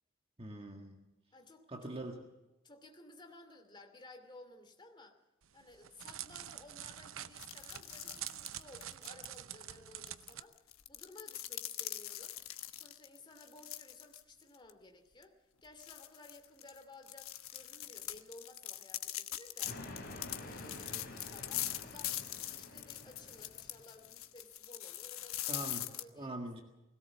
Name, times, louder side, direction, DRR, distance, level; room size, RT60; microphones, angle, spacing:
voice 1, 0.4-1.1 1.7-2.2 25.5-25.9 26.1-26.6, right 1 dB, 25° right, 3 dB, 1.8 m, -43 dB
voice 2, 1.3-2.0 2.6-5.2 5.5-12.4 12.7-19.8 20.4-22.2 22.5-26.4, left 2 dB, 20° left, 5 dB, 2.7 m, -56 dB
Crackle, 5.4-10.4, right 11 dB, 70° right, 0.8 m, -46 dB
sound 1, 7.4-9.2 10.1-14.2 14.5-14.7 15.2-15.3 15.8-26.0, left 13 dB, 85° left, 1.1 m, -42 dB
sound 2, 19.6-24.1, left 1 dB, 50° left, 3.9 m, -49 dB
20.5 x 17.5 x 7.1 m, 1.0 s
head